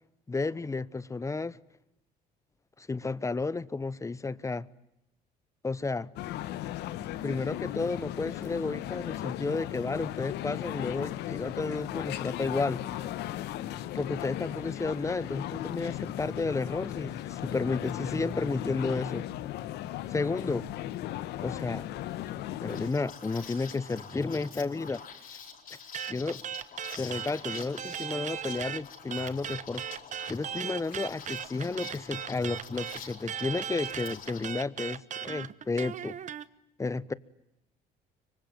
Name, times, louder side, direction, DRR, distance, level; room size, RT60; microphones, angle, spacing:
voice 1, 0.3-1.6 2.8-4.7 5.6-6.1 7.2-12.8 13.9-19.3 20.1-20.7 21.4-21.9 22.6-25.0 26.1-26.4 27.0-29.8 30.3-36.2 36.8-37.1, left 3 dB, 20° left, 1.0 m, -32 dB
sound 1, 6.2-22.9, left 13 dB, 85° left, 1.3 m, -36 dB
Liquid, 22.7-34.5, left 7 dB, 55° left, 4.8 m, -47 dB
sound 2, 25.9-28.8 29.1-36.4, right 9 dB, 45° right, 1.1 m, -37 dB
25.5 x 24.0 x 9.3 m
cardioid pair, 110°, 17 cm